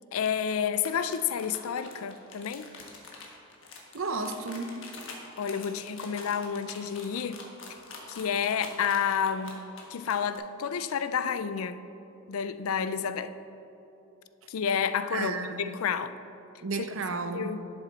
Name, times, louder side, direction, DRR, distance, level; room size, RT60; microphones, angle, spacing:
voice 1, 0.1-2.7 5.4-7.4 8.1-9.6 9.9-11.8 12.3-13.3 14.5-16.2 17.3-17.6, left 7 dB, 80° left, 12 dB, 0.4 m, -30 dB
sound 1, 0.7-10.4, left 4 dB, 60° left, 1.4 m, -46 dB
voice 2, 3.9-4.9 15.1-15.8 16.6-17.5, right 4 dB, 65° right, 8 dB, 0.6 m, -33 dB
11.5 x 7.0 x 4.1 m, 2.9 s
head